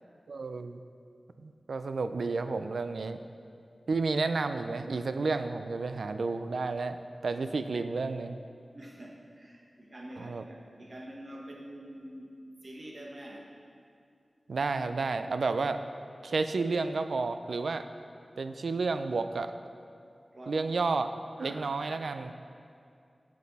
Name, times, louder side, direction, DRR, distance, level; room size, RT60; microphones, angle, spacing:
voice 1, 0.3-0.8 1.4-3.2 3.9-8.4 10.2-10.4 14.5-15.8 16.2-17.9 18.4-19.5 20.5-21.1 21.4-22.3, right 3 dB, 85° right, 9 dB, 0.3 m, -31 dB
voice 2, 8.7-12.4 12.6-13.5 20.3-20.7 21.4-22.2, right 1 dB, 45° right, 0 dB, 1.2 m, -46 dB
8.4 x 7.3 x 4.1 m, 2.4 s
wide cardioid pair, 85°, 0 cm